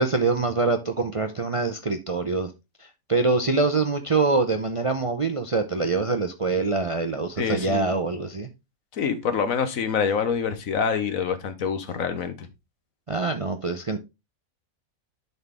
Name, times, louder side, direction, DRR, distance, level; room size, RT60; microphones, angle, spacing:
voice 1, 0.0-2.5 2.8-8.5 13.1-14.0, right 3 dB, 40° right, 7 dB, 0.4 m, -24 dB
voice 2, 7.4-7.9 8.9-12.5, left 6 dB, 75° left, 10 dB, 1.4 m, -26 dB
11.0 x 4.2 x 3.4 m, 0.24 s
omnidirectional pair, 1.5 m